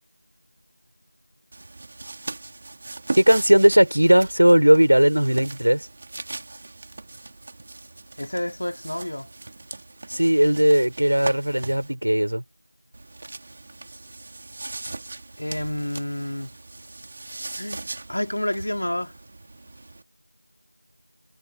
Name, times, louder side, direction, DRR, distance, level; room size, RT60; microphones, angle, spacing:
sound 1, 1.5-11.9 12.9-20.0, right 2 dB, 10° right, 3.4 m, -39 dB
voice 1, 3.2-5.9 10.1-12.4, right 1 dB, 55° right, 4.4 m, -17 dB
voice 2, 8.2-9.3 15.4-16.5 17.6-19.1, left 1 dB, 35° left, 3.8 m, -29 dB
figure-of-eight pair, 180°, 0 cm